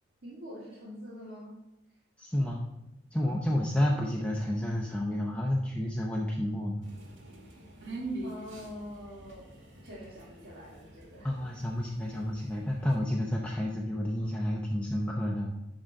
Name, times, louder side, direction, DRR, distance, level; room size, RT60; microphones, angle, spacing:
voice 1, 0.2-1.5 8.2-11.3, equal, 50° right, -8 dB, 2.1 m, -45 dB
voice 2, 2.2-2.7 3.1-6.9 11.2-15.5, left 1 dB, 5° left, -2 dB, 0.6 m, -30 dB
sound 1, 6.8-13.0, right 2 dB, 80° right, 2.0 m, -44 dB
11.0 x 3.8 x 5.2 m, 0.90 s
head